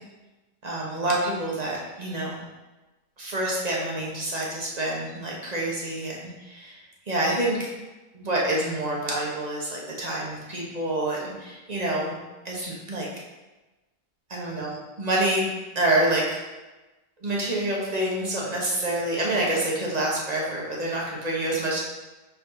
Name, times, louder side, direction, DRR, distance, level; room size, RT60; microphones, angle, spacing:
voice 1, 0.6-2.4 3.2-6.8 7.1-7.6 8.1-12.2 12.4-13.1 14.3-15.5 15.7-16.4 17.2-21.8, right 1 dB, 40° right, -3 dB, 1.4 m, -27 dB
4.6 x 4.2 x 5.7 m, 1.1 s
omnidirectional pair, 1.1 m